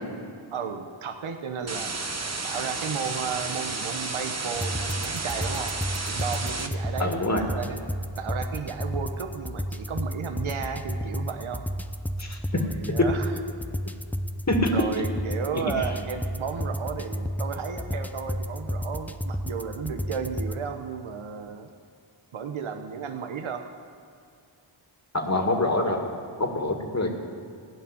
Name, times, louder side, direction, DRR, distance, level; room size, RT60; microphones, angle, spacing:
voice 1, 0.5-1.9 2.4-5.7 6.0-7.8 8.2-11.6 12.5-13.3 14.7-21.7 22.3-23.6 25.8-25.9, right 6 dB, 75° right, 5 dB, 1.0 m, -33 dB
sound 1, 1.7-6.7, right 3 dB, 30° right, 1.2 m, -32 dB
sound 2, 4.5-20.6, equal, 5° left, 0.6 m, -32 dB
voice 2, 7.0-7.4 12.2-12.6 13.0-13.1 14.5-14.7 15.5-15.6 25.1-26.1 26.4-27.1, left 2 dB, 35° left, 3 dB, 2.2 m, -25 dB
16.5 x 6.1 x 9.8 m, 2.4 s
cardioid pair, 50°, 49 cm